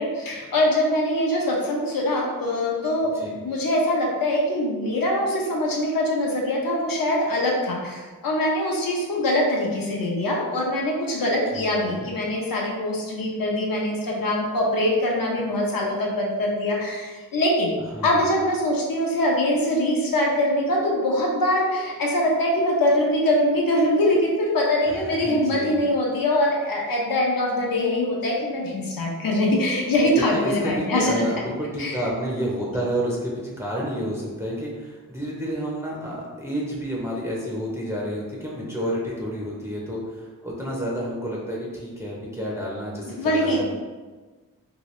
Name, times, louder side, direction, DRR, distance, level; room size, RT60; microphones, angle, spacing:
voice 1, 0.0-17.7 18.0-31.1 31.8-32.0 43.2-43.6, left 1 dB, 75° left, -2 dB, 0.8 m, -23 dB
voice 2, 11.5-12.1 17.9-18.3 24.9-25.8 30.3-43.6, equal, 10° right, -4 dB, 0.6 m, -30 dB
2.9 x 2.8 x 3.0 m, 1.3 s
wide cardioid pair, 105°, 35 cm